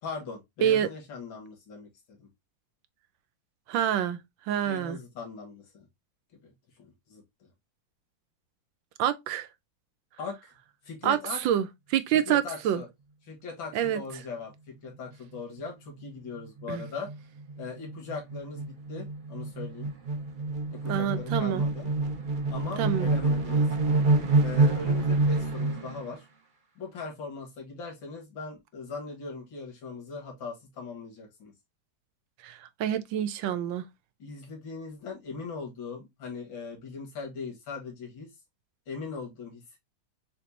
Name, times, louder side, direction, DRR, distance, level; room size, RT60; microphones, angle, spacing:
voice 1, 0.0-2.3 4.6-5.9 6.4-6.5 6.8-7.5 10.2-10.5 10.8-11.4 12.1-12.9 13.3-17.1 17.6-19.9 20.7-21.9 22.5-23.7 24.4-26.2 26.8-31.5 34.2-38.3 38.9-39.8, left 4 dB, 80° left, 2.4 m, -40 dB
voice 2, 3.7-4.2 4.5-5.0 9.0-9.5 11.0-12.8 13.7-14.0 16.7-16.8 20.8-21.6 22.8-23.1 32.4-33.9, right 10 dB, 80° right, 1.4 m, -27 dB
sound 1, 15.3-15.6 16.0-16.1 16.4-26.0, right 3 dB, 40° right, 0.7 m, -27 dB
6.5 x 2.7 x 2.7 m
omnidirectional pair, 2.1 m